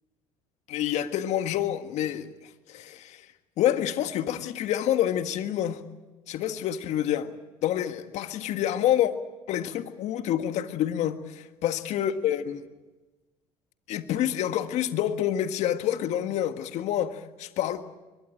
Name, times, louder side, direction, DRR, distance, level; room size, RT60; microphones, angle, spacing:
voice 1, 0.7-3.3 3.6-5.8 6.3-7.4 7.6-9.1 9.5-12.7 13.9-17.8, left 11 dB, 60° left, 1.7 m, -28 dB
23.0 x 22.0 x 8.8 m
supercardioid pair, 75°, 13 cm